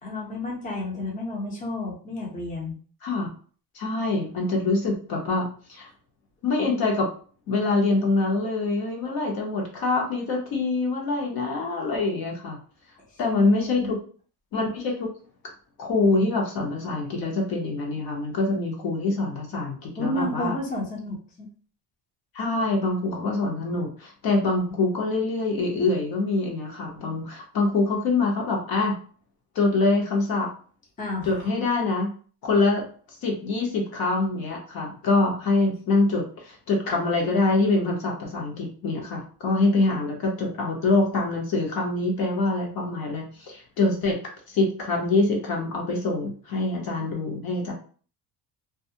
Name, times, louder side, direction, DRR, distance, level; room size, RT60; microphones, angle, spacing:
voice 1, 0.0-2.7 13.3-14.0 20.0-21.5 31.0-31.5, left 1 dB, 20° left, -3 dB, 0.6 m, -31 dB
voice 2, 3.7-5.9 6.4-7.1 7.5-12.6 13.2-14.0 14.5-15.1 15.8-20.5 22.3-28.9 29.5-30.5 31.2-32.1 32.4-32.8 33.2-47.7, left 3 dB, 55° left, 0 dB, 0.8 m, -25 dB
2.3 x 2.1 x 2.6 m, 0.42 s
cardioid pair, 145°, 44 cm